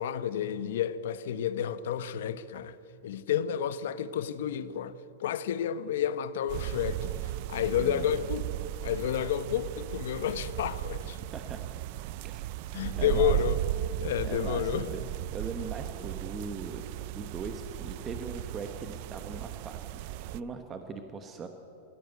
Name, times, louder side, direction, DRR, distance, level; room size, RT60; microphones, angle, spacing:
voice 1, 0.0-2.8 3.0-4.9 5.2-7.1 7.5-8.4 8.8-11.2 12.7-13.6 14.0-14.9, left 9 dB, 70° left, 1.1 m, -30 dB
sound 1, 6.5-20.4, right 13 dB, 45° right, 0.4 m, -36 dB
voice 2, 12.9-13.4 14.2-15.0 15.3-20.0 20.3-21.5, right 5 dB, 20° right, 1.0 m, -39 dB
22.5 x 16.0 x 8.2 m
supercardioid pair, 165°, 0 cm